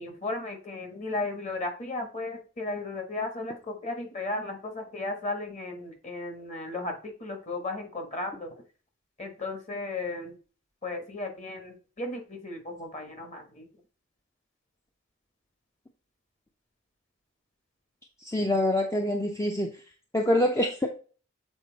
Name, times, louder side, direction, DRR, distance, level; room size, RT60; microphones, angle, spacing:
voice 1, 0.0-8.5 9.2-10.3 10.8-13.7, left 2 dB, 35° left, 4 dB, 1.5 m, -35 dB
voice 2, 18.2-19.7 20.1-20.9, left 1 dB, 15° left, 3 dB, 0.6 m, -25 dB
7.2 x 4.2 x 4.0 m, 0.38 s
head